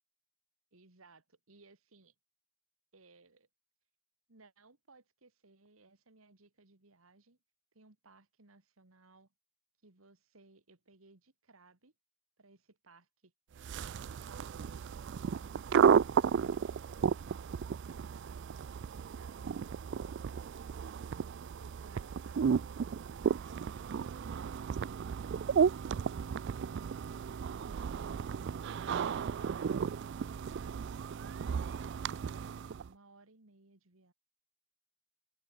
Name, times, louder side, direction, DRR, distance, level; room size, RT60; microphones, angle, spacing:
voice 1, 0.7-2.1 2.9-3.5 4.3-7.4 7.7-9.3 9.8-11.9 12.4-13.3 13.6-20.7 29.0-34.1, right 3 dB, 90° right, 2.2 m, -62 dB
sound 1, 13.6-32.9, right 7 dB, 55° right, 0.3 m, -33 dB
head